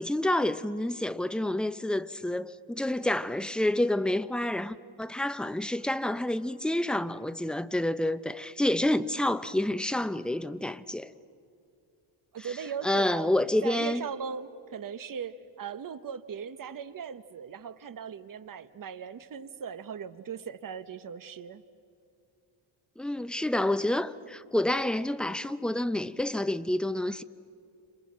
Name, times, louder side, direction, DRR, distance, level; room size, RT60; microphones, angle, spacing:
voice 1, 0.0-11.1 12.8-14.0 23.0-27.2, left 1 dB, ahead, 0.6 m, -28 dB
voice 2, 12.3-13.3 13.6-21.6, right 7 dB, 45° right, 1.2 m, -39 dB
29.5 x 27.0 x 7.4 m
cardioid pair, 115°, 48 cm